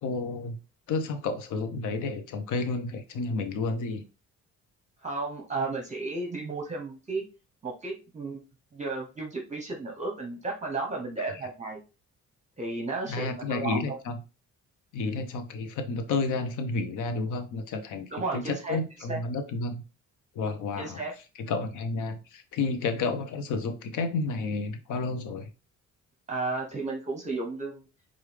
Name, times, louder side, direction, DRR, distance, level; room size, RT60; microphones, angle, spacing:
voice 1, 0.0-0.6 0.9-4.0 11.2-11.3 13.1-14.2 14.9-19.8 20.3-21.0 21.4-25.5, left 3 dB, 80° left, 8 dB, 0.8 m, -31 dB
voice 2, 5.0-7.2 7.6-8.4 8.7-11.8 12.6-14.0 18.1-18.8 19.1-19.2 20.8-21.1 26.3-27.8, right 3 dB, 25° right, 1 dB, 0.8 m, -33 dB
4.8 x 2.5 x 3.2 m, 0.31 s
cardioid pair, 90°, 30 cm